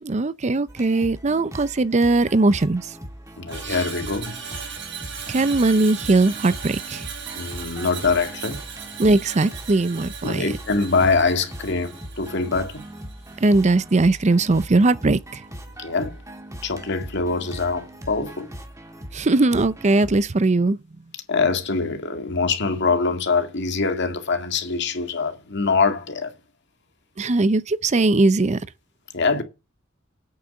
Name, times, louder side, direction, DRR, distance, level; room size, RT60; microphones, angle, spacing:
voice 1, 0.0-2.9 3.6-3.8 5.3-7.0 9.0-10.5 13.4-15.4 19.1-20.8 27.2-28.6, right 2 dB, 35° right, 0.6 m, -19 dB
sound 1, 0.7-20.2, equal, 15° right, 1.9 m, -40 dB
voice 2, 3.4-4.3 7.4-8.6 10.2-12.9 15.8-16.1 16.6-18.5 21.3-26.3 29.1-29.4, left 4 dB, 60° left, 2.1 m, -23 dB
Screech, 3.5-13.8 14.2-14.4, right 6 dB, 60° right, 3.8 m, -37 dB
8.7 x 6.6 x 8.3 m
head